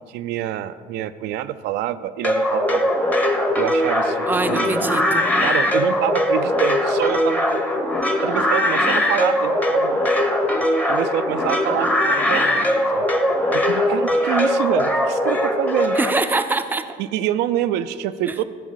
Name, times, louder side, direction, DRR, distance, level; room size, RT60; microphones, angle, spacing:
voice 1, 0.1-2.9 3.6-4.7 5.4-7.8 8.2-10.0 10.9-13.0 13.5-16.0 17.0-18.4, right 12 dB, 85° right, 11 dB, 0.4 m, -26 dB
sound 1, 2.2-16.1, left 1 dB, 10° left, 0.9 m, -20 dB
voice 2, 4.3-5.3 15.9-16.9 18.3-18.4, right 3 dB, 10° right, 8 dB, 0.5 m, -23 dB
13.5 x 5.0 x 6.3 m, 2.1 s
cardioid pair, 110°, 17 cm